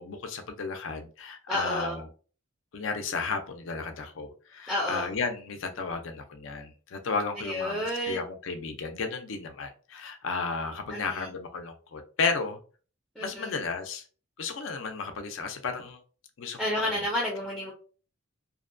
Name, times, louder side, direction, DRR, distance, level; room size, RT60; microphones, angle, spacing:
voice 1, 0.0-2.1 2.7-12.6 13.2-14.1 14.4-16.0 16.4-17.0, left 4 dB, 65° left, 7 dB, 0.4 m, -33 dB
voice 2, 1.5-2.0 4.7-5.1 7.4-8.2 10.9-11.3 13.2-13.6 16.6-17.7, left 1 dB, ahead, -4 dB, 0.5 m, -31 dB
2.6 x 2.1 x 2.5 m, 0.39 s
head